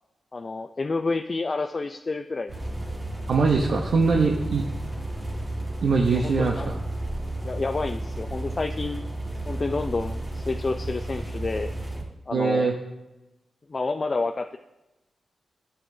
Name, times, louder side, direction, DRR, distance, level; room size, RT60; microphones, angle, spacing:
voice 1, 0.3-2.5 6.1-6.7 7.4-9.1 9.5-11.7 12.3-12.7 13.7-14.6, left 3 dB, 45° left, 6 dB, 0.3 m, -29 dB
sound 1, 2.5-12.0, right 1 dB, 25° right, 1.9 m, -32 dB
voice 2, 3.3-4.6 5.8-6.7 12.3-12.7, right 4 dB, 80° right, 0 dB, 0.7 m, -22 dB
11.0 x 7.0 x 2.7 m, 0.99 s
cardioid pair, 65°, 0 cm